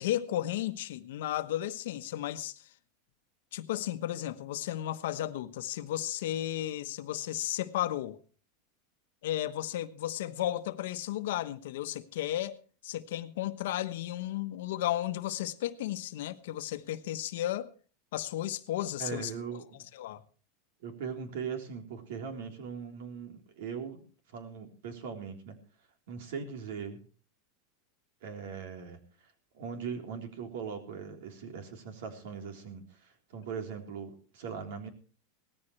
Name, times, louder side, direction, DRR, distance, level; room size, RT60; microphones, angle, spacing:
voice 1, 0.0-2.6 3.5-8.2 9.2-12.6 12.8-17.7 18.1-19.3 19.9-20.2, left 13 dB, 75° left, 1.1 m, -34 dB
voice 2, 19.0-19.8 20.8-24.0 24.3-25.6 26.1-27.0 28.2-29.0 29.5-34.9, right 6 dB, 70° right, 3.6 m, -40 dB
18.0 x 14.5 x 3.2 m
supercardioid pair, 140°, 0 cm